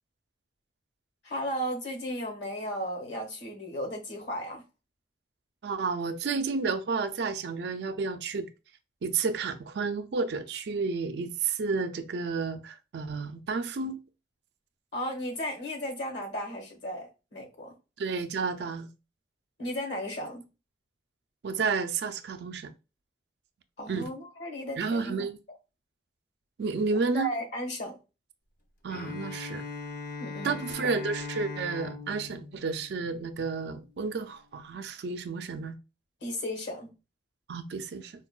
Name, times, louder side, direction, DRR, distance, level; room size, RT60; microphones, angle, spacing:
voice 1, 1.2-4.6 14.9-17.7 19.6-20.5 23.8-25.2 27.1-28.0 30.2-30.6 36.2-36.9, equal, 75° left, 1.2 m, -35 dB
voice 2, 5.6-8.5 9.0-14.0 18.0-18.9 21.4-22.7 23.9-24.1 24.8-25.4 26.6-27.3 28.8-29.6 30.4-35.8 37.5-38.1, right 4 dB, 70° right, 0.4 m, -31 dB
Bowed string instrument, 28.9-33.7, left 4 dB, 50° left, 0.5 m, -40 dB
4.3 x 2.1 x 2.2 m
head